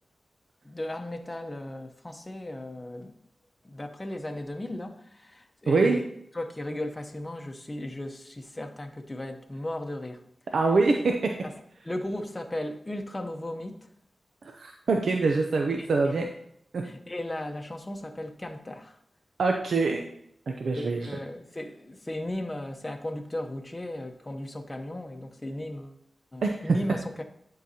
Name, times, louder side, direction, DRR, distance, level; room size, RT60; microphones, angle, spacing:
voice 1, 0.6-3.1 3.6-6.0 6.3-10.2 11.4-11.5 11.8-13.9 15.8-16.2 16.8-19.0 20.7-26.0 26.3-27.3, left 1 dB, 25° left, 0.8 m, -36 dB
voice 2, 5.7-6.0 10.5-11.1 14.5-16.3 16.7-16.8 19.4-20.0 20.5-21.0 26.4-26.8, right 3 dB, 75° right, 0.5 m, -24 dB
10.0 x 3.9 x 2.8 m
cardioid pair, 45°, 0 cm